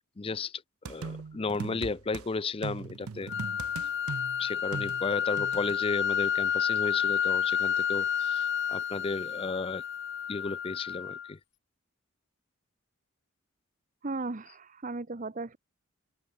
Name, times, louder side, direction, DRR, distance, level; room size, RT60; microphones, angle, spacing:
voice 1, 0.0-3.3 4.4-9.8 10.3-11.4, left 3 dB, 25° left, 0.4 m, -34 dB
sound 1, 0.8-2.3 2.6-5.8, right 5 dB, 80° right, 0.6 m, -40 dB
sound 2, 3.3-11.3, left 8 dB, 50° left, 0.9 m, -30 dB
voice 2, 14.0-15.6, right 3 dB, 35° right, 0.8 m, -36 dB
head